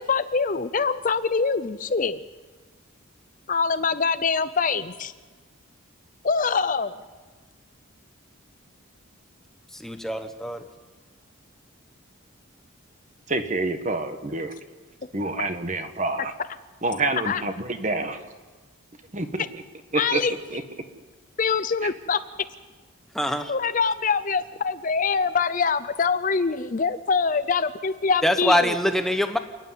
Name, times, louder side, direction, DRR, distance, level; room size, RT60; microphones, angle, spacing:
voice 1, 0.0-2.2 3.5-5.1 6.2-7.0 17.2-17.4 19.9-20.3 21.4-22.2 23.5-28.8, left 5 dB, 35° left, 12 dB, 0.5 m, -24 dB
voice 2, 9.8-10.6 23.1-23.5 28.2-29.4, left 1 dB, ahead, 6 dB, 1.0 m, -23 dB
voice 3, 13.3-14.5 15.1-16.3 16.8-18.2 19.1-19.4 19.9-20.2 20.5-20.6, right 2 dB, 35° right, 7 dB, 1.4 m, -27 dB
28.0 x 10.0 x 9.6 m, 1.3 s
head